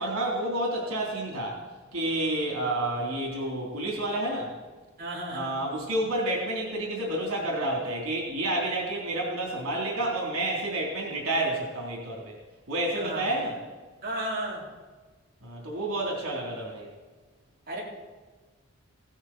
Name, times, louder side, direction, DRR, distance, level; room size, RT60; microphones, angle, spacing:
voice 1, 0.0-1.6 1.9-4.5 5.3-12.4 12.7-13.6 15.4-16.9, right 1 dB, 85° right, -1 dB, 3.5 m, -29 dB
voice 2, 5.0-5.5 12.9-13.3 14.0-14.7 17.7-17.8, right 1 dB, 40° right, -5 dB, 3.8 m, -33 dB
16.0 x 12.5 x 4.4 m, 1.3 s
head